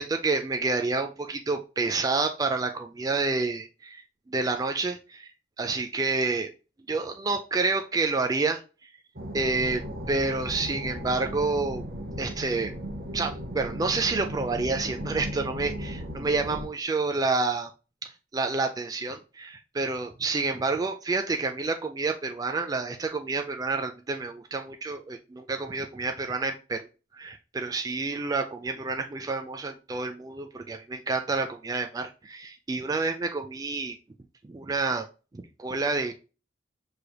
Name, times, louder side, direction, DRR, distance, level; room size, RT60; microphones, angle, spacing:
voice 1, 0.0-5.3 5.6-6.5 6.9-8.9 9.3-11.8 12.2-12.7 13.1-17.7 18.0-26.9 27.1-34.0 34.4-35.1 35.3-36.1, right 3 dB, 20° right, 4 dB, 0.3 m, -29 dB
sound 1, 9.1-16.7, equal, 50° right, 0.9 m, -36 dB
5.8 x 3.3 x 2.2 m, 0.33 s
head